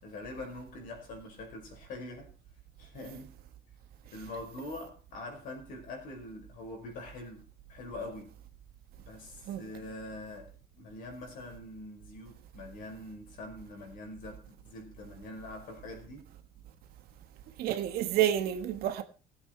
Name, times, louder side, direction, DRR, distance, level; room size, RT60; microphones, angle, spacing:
voice 1, 0.0-2.3 2.8-3.4 4.1-8.4 9.0-16.3, left 2 dB, 55° left, 5.2 m, -44 dB
voice 2, 17.6-19.0, right 11 dB, 70° right, 1.6 m, -29 dB
19.5 x 8.2 x 4.6 m
cardioid pair, 175°, 16 cm